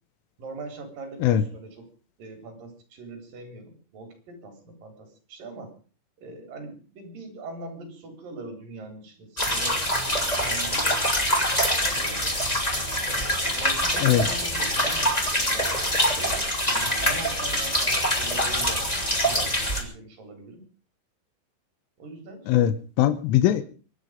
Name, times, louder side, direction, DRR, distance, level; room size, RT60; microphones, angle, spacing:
voice 1, 0.4-1.9 2.2-5.7 6.2-11.3 11.9-12.4 13.1-18.8 19.2-20.6 22.0-22.5, right 2 dB, 50° right, 5 dB, 5.6 m, -41 dB
sound 1, 9.4-19.8, equal, 10° left, 2.0 m, -25 dB
voice 2, 22.5-23.6, left 11 dB, 90° left, 11 dB, 3.6 m, -21 dB
23.5 x 10.5 x 5.2 m, 0.39 s
omnidirectional pair, 5.4 m